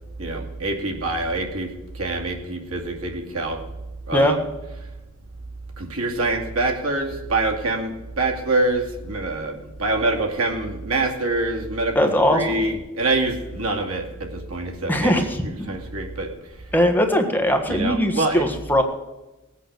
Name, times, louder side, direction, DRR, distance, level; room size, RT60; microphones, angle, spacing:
voice 1, 0.2-3.6 4.1-4.5 5.8-16.3 17.7-18.5, right 2 dB, 85° right, 2 dB, 2.4 m, -25 dB
voice 2, 11.9-12.6 14.9-15.4 16.7-18.8, equal, 10° left, 4 dB, 1.4 m, -20 dB
18.5 x 8.4 x 6.7 m, 1.0 s
head